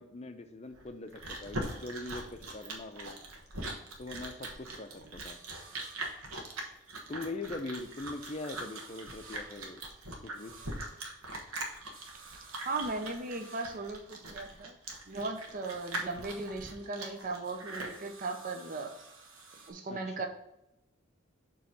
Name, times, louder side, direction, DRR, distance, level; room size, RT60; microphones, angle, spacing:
voice 1, 0.0-3.2 4.0-5.4 7.1-9.8 10.2-10.5 19.9-20.3, left 2 dB, 30° left, 8 dB, 0.5 m, -42 dB
sound 1, 0.6-3.0 3.4-7.0 7.4-14.8 15.2-19.7, right 3 dB, 70° right, 1.3 m, -56 dB
Chewing mastication, 0.7-18.0, right 2 dB, 90° right, 1.2 m, -41 dB
voice 2, 12.7-14.8 15.1-18.9 19.7-20.3, right 3 dB, 40° right, 4 dB, 0.6 m, -37 dB
6.9 x 3.1 x 5.8 m, 0.86 s
head